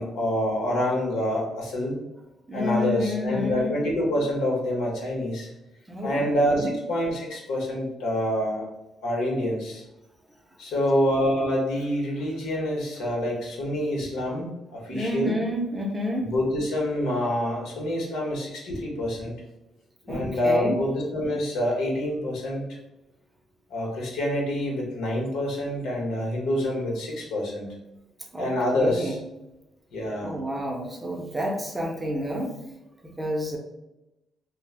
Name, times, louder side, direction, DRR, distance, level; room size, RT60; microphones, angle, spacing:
voice 1, 0.0-2.0 2.5-5.5 6.0-8.7 9.0-9.8 10.6-15.3 16.2-19.3 20.0-22.6 23.7-27.7 28.4-29.1 29.9-30.4, left 1 dB, 85° left, -2 dB, 0.8 m, -27 dB
voice 2, 2.5-3.8 5.9-6.7 14.9-16.3 20.1-20.8 28.3-29.2 30.2-32.5 33.0-33.6, left 1 dB, 15° right, 1 dB, 0.5 m, -29 dB
3.1 x 2.1 x 2.3 m, 0.94 s
cardioid pair, 90°, 0 cm